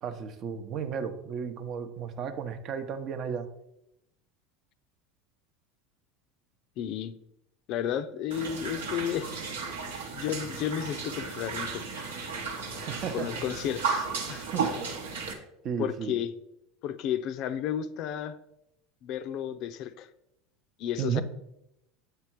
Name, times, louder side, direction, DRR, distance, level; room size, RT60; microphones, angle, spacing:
voice 1, 0.0-3.5 12.8-13.4 14.5-14.7 15.6-16.2 21.0-21.2, right 7 dB, 50° right, 8 dB, 0.7 m, -33 dB
voice 2, 6.8-7.1 7.7-9.3 10.1-12.1 13.1-14.5 15.8-16.3 16.8-18.4 19.0-20.1 20.8-21.2, left 10 dB, 55° left, 12 dB, 0.4 m, -32 dB
sound 1, 8.3-15.3, right 5 dB, 85° right, 1.0 m, -34 dB
7.8 x 3.5 x 4.5 m, 0.82 s
hypercardioid pair, 85°, 0 cm